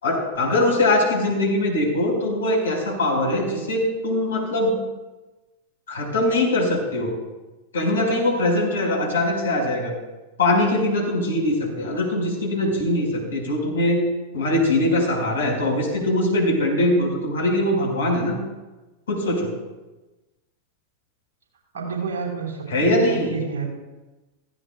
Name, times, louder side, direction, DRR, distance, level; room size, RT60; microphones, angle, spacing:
voice 1, 0.0-4.8 5.9-7.1 7.7-9.9 10.4-14.0 14.3-18.4 19.1-19.5 22.7-23.3, left 1 dB, 65° left, 0 dB, 4.6 m, -22 dB
voice 2, 21.7-23.7, right 5 dB, 65° right, 0 dB, 4.0 m, -29 dB
16.0 x 16.0 x 2.3 m, 1.1 s
figure-of-eight pair, 90°, 0 cm